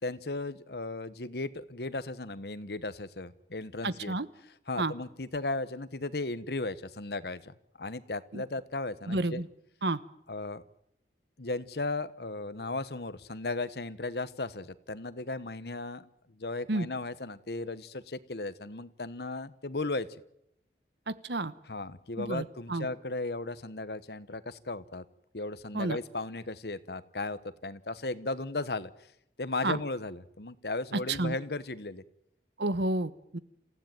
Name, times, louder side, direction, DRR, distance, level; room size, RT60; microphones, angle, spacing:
voice 1, 0.0-4.2 4.7-9.4 10.3-10.6 11.4-20.2 21.6-25.0 25.3-28.9 29.4-32.0, left 2 dB, 65° left, 15 dB, 1.1 m, -36 dB
voice 2, 3.8-4.3 4.8-4.9 8.3-8.4 9.1-9.5 9.8-10.0 16.7-16.9 21.1-21.5 22.2-22.4 22.7-22.9 25.7-26.0 29.6-29.8 31.2-31.3 32.6-33.4, right 2 dB, 75° right, 14 dB, 1.2 m, -30 dB
27.5 x 16.0 x 9.1 m, 0.78 s
head